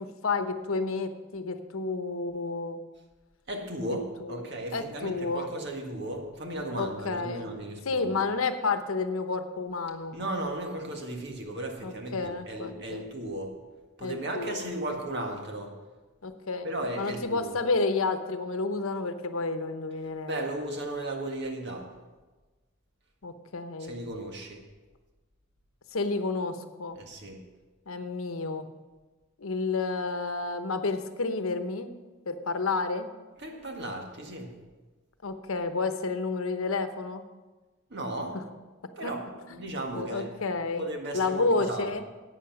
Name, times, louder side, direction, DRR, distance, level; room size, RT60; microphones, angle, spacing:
voice 1, 0.0-2.8 4.3-4.4 4.7-5.5 6.8-7.5 7.9-10.2 11.8-13.0 14.0-14.7 16.2-16.7 17.0-20.4 23.2-23.9 25.9-27.0 27.9-28.7 29.4-31.9 32.3-33.1 35.2-37.2 39.0-39.1 39.5-39.6 39.9-40.9 41.1-42.0, left 3 dB, 90° left, 9 dB, 0.9 m, -30 dB
voice 2, 3.5-8.3 10.1-13.6 14.0-15.8 16.6-17.6 20.3-21.9 23.8-24.6 26.9-27.4 33.4-34.5 37.9-38.4 39.0-39.2 39.5-40.3 40.8-42.0, right 1 dB, 55° right, 2 dB, 1.7 m, -35 dB
11.5 x 8.4 x 5.9 m, 1.2 s
head